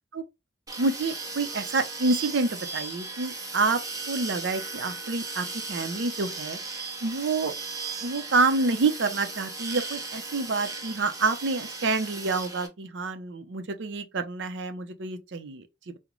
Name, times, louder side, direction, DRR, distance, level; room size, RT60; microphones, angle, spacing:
sound 1, 0.7-12.7, right 3 dB, 20° right, 0.6 m, -37 dB
voice 1, 0.8-3.8 4.1-7.5 8.0-15.9, right 3 dB, 80° right, 0.5 m, -28 dB
3.7 x 2.1 x 3.0 m
head